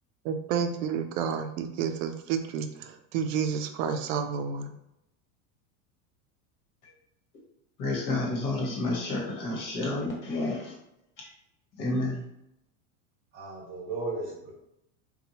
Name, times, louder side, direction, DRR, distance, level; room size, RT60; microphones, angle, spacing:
voice 1, 0.2-4.7, right 7 dB, 65° right, 7 dB, 0.5 m, -30 dB
voice 2, 7.8-10.8 11.2-11.3 11.8-12.2, left 2 dB, 45° left, -3 dB, 1.2 m, -30 dB
voice 3, 13.3-14.5, right 3 dB, 25° right, -3 dB, 1.3 m, -35 dB
2.7 x 2.3 x 2.8 m, 0.83 s
supercardioid pair, 110°, 43 cm